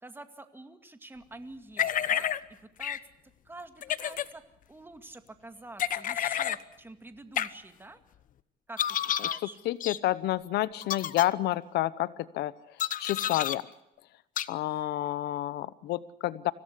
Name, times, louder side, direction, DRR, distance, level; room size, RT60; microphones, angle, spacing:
voice 1, 0.0-3.0 3.4-4.4 4.7-8.0 8.7-9.6, right 2 dB, 15° right, 7 dB, 2.2 m, -48 dB
sound 1, 1.8-2.4 2.8-3.0 3.8-4.3 5.8-6.6 7.4-7.5 8.8-9.4 9.8-10.0 10.8-11.3 12.8-13.6 14.4-14.5, left 10 dB, 55° left, 1.0 m, -30 dB
voice 2, 9.6-12.5 13.0-13.6 14.5-16.5, left 15 dB, 80° left, 17 dB, 0.9 m, -29 dB
25.0 x 16.5 x 8.3 m, 0.84 s
cardioid pair, 110°, 17 cm